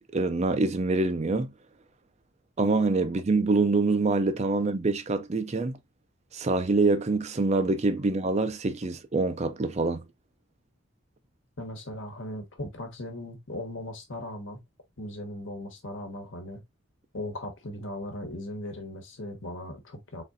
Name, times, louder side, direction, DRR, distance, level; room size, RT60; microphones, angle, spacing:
voice 1, 0.1-1.5 2.6-5.8 6.3-10.1, right 3 dB, 30° right, 0.5 m, -25 dB
voice 2, 11.6-14.6 15.0-16.6 17.1-20.2, left 1 dB, 60° left, 1.3 m, -38 dB
4.0 x 3.6 x 2.6 m
head